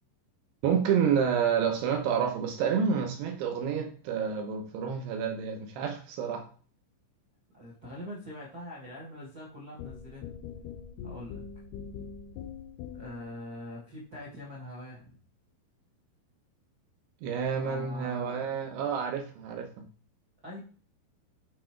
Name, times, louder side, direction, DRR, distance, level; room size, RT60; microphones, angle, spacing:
voice 1, 0.6-6.5 17.2-19.7, right 7 dB, 75° right, 4 dB, 2.7 m, -29 dB
voice 2, 7.5-10.3 11.0-11.4 12.9-15.0 17.6-18.4 20.4-20.6, left 1 dB, 50° right, -5 dB, 1.1 m, -43 dB
sound 1, 9.8-13.3, left 7 dB, 85° left, 2.3 m, -42 dB
7.8 x 4.2 x 4.4 m, 0.40 s
omnidirectional pair, 5.3 m